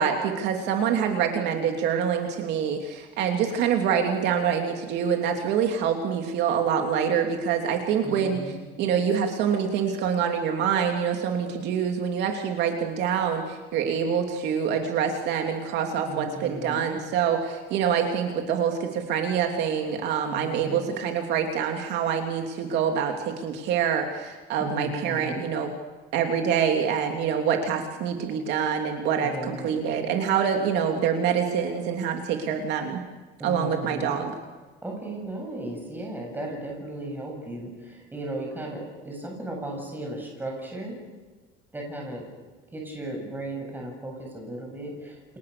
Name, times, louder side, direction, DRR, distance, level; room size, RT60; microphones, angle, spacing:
voice 1, 0.0-8.4 8.8-25.7 26.1-33.0 33.4-34.3, right 7 dB, 60° right, 3 dB, 3.0 m, -26 dB
voice 2, 8.0-8.6 16.0-17.0 20.2-20.9 24.6-25.4 29.2-29.7 33.4-34.2 34.8-40.9 41.7-42.2 42.7-45.2, right 1 dB, 10° right, 1 dB, 7.7 m, -36 dB
29.5 x 28.5 x 6.9 m, 1.3 s
cardioid pair, 165°, 20 cm